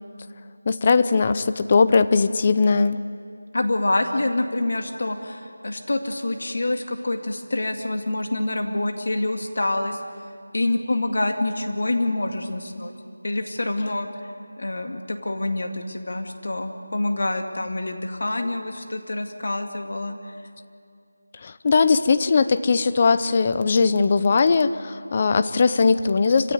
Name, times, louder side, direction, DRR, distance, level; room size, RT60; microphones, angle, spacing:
voice 1, 0.7-3.0 21.4-26.5, left 4 dB, 25° left, 13 dB, 0.5 m, -19 dB
voice 2, 3.5-10.0 10.5-12.9 13.2-14.1 14.6-20.1, left 2 dB, 55° left, 5 dB, 2.2 m, -26 dB
26.0 x 16.5 x 9.4 m, 2.4 s
figure-of-eight pair, 175°, 0 cm